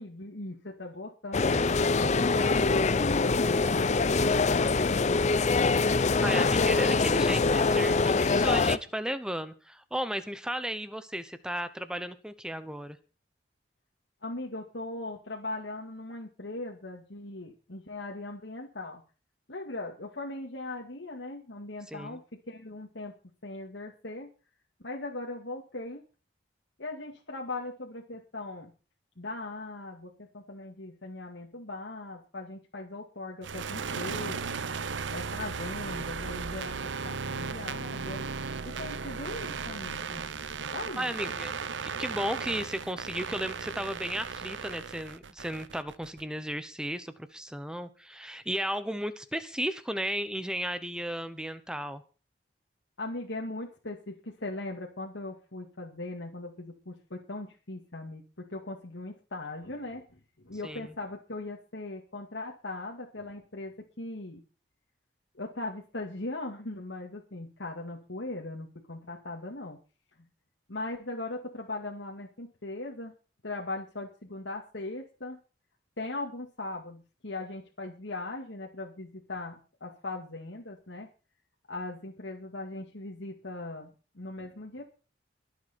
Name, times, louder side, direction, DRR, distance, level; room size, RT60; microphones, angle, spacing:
voice 1, 0.0-5.2 14.2-19.0 19.5-23.2 23.4-24.3 24.8-26.0 26.8-28.7 29.2-34.6 35.1-38.2 38.7-40.2 40.7-41.1 53.0-60.2 60.4-64.4 65.3-69.8 70.7-73.1 73.4-75.4 76.0-81.1 81.7-84.8, left 2 dB, 80° left, 2.0 m, -39 dB
sound 1, 1.3-8.8, left 4 dB, 40° left, 0.6 m, -24 dB
voice 2, 6.2-13.0 21.9-22.2 41.0-41.5 41.8-52.0 60.6-60.9, equal, 5° right, 1.0 m, -34 dB
sound 2, 33.4-46.2, right 5 dB, 85° right, 0.8 m, -36 dB
22.5 x 8.0 x 4.4 m
head